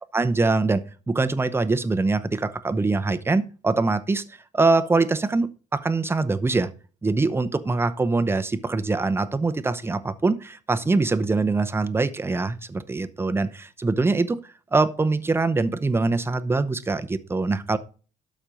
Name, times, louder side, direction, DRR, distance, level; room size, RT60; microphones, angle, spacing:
voice 1, 0.1-6.7 7.0-14.4 14.7-17.8, right 3 dB, 15° right, 10 dB, 0.7 m, -23 dB
12.5 x 4.4 x 5.2 m, 0.38 s
cardioid pair, 110°, 17 cm